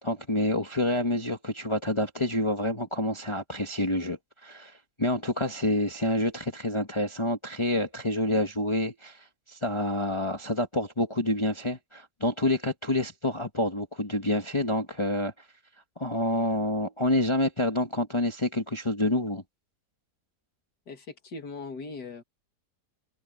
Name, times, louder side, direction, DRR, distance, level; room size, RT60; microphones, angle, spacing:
voice 1, 0.0-15.3 16.0-19.4, left 1 dB, 20° left, 1.4 m, -28 dB
voice 2, 20.9-22.2, left 3 dB, 90° left, 2.9 m, -39 dB
omnidirectional pair, 1.7 m